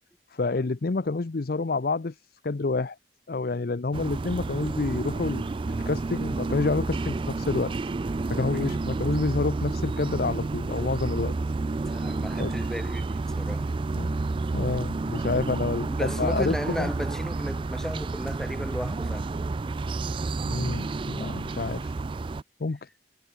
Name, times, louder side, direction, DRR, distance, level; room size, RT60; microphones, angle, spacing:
voice 1, 0.3-2.1 2.4-3.0 3.3-5.5 5.9-7.7 8.3-11.3 12.4-12.5 14.0-14.2 14.5-16.9 20.4-21.9 22.6-22.8, left 3 dB, 55° left, 0.6 m, -28 dB
sound 1, 3.9-22.4, right 3 dB, 30° right, 0.3 m, -30 dB
voice 2, 11.8-13.7 15.9-19.3, equal, 5° left, 3.6 m, -35 dB
head